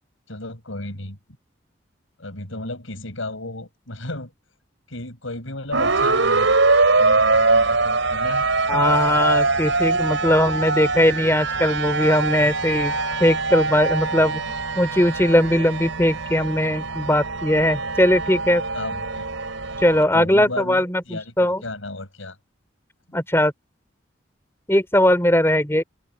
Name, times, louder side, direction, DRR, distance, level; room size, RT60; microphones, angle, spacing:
voice 1, 0.3-1.2 2.2-4.3 4.9-6.6 7.0-8.5 8.7-9.0 11.1-11.2 14.1-14.5 17.9-18.0 18.7-19.3 20.1-22.4 23.1-23.2, left 2 dB, 85° left, 6.9 m, -34 dB
sound 1, 5.7-20.0, right 3 dB, 75° right, 4.5 m, -22 dB
voice 2, 8.7-12.9 13.2-14.4 14.8-18.6 19.8-21.6 23.1-23.5 24.7-25.8, left 1 dB, 10° left, 4.1 m, -19 dB
open air
head